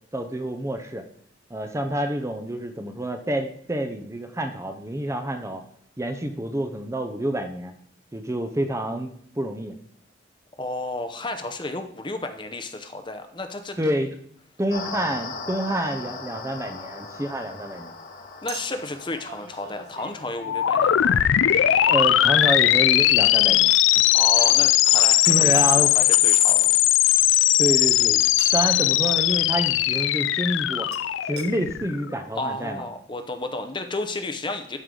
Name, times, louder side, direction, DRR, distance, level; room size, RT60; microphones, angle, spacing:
voice 1, 0.1-1.0 1.5-5.6 6.0-7.7 8.1-9.8 13.8-14.1 14.6-17.9 21.9-23.7 25.2-25.9 27.6-28.2 28.5-30.9 31.3-32.8, right 1 dB, 15° right, 6 dB, 0.6 m, -28 dB
voice 2, 10.6-13.8 18.4-21.2 24.1-26.8 32.3-34.8, left 2 dB, 25° left, 7 dB, 0.7 m, -32 dB
sound 1, 14.7-20.3, left 4 dB, 45° left, 1.0 m, -38 dB
Chink clink, 15.7-15.8 18.5-21.7 23.2-24.9 25.5-25.8 28.4-28.8 30.9-31.0 31.4-31.5 32.1-32.2 32.4-32.5, right 6 dB, 55° right, 1.0 m, -43 dB
sound 2, 20.4-32.1, left 13 dB, 80° left, 0.3 m, -19 dB
12.5 x 4.8 x 3.8 m, 0.66 s
head